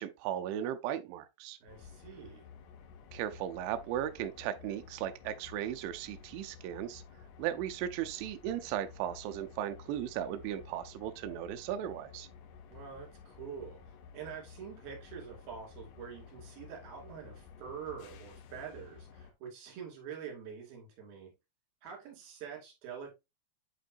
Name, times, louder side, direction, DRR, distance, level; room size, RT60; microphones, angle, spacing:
voice 1, 0.0-1.6 3.1-7.0 7.4-12.3, right 11 dB, 90° right, 2.6 m, -36 dB
voice 2, 1.6-2.5 12.7-13.8 14.1-21.3 21.8-23.1, right 7 dB, 55° right, 3.8 m, -46 dB
sound 1, 1.7-19.3, left 6 dB, 85° left, 3.7 m, -53 dB
8.4 x 5.1 x 2.5 m
omnidirectional pair, 5.9 m